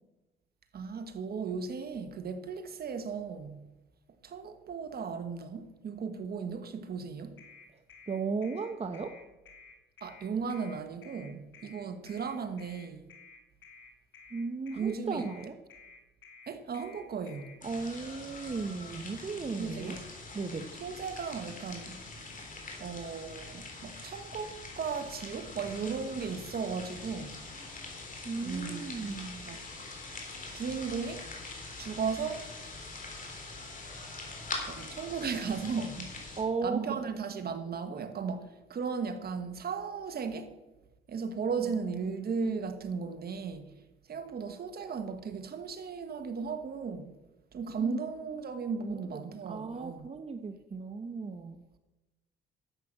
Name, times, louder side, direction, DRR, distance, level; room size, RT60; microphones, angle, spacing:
voice 1, 0.7-3.6 4.2-7.4 10.0-13.1 14.7-15.3 16.5-17.6 19.6-20.1 20.8-22.0 22.8-27.4 28.4-29.1 29.4-29.6 30.5-31.2 31.8-32.4 34.6-36.1 36.6-40.5 41.1-43.7 44.1-47.1 47.5-50.1, right 5 dB, 50° right, 1.5 m, -36 dB
sound 1, 7.4-17.6, left 4 dB, 75° left, 2.6 m, -53 dB
voice 2, 8.1-9.1 14.3-15.6 17.6-20.0 20.3-20.7 28.2-29.5 36.4-37.0 41.6-41.8 47.8-48.0 48.8-49.2 49.5-51.6, right 4 dB, 30° right, 0.9 m, -36 dB
sound 2, 17.6-36.4, left 3 dB, 40° left, 3.6 m, -44 dB
11.0 x 7.7 x 7.5 m
cardioid pair, 90°, 20 cm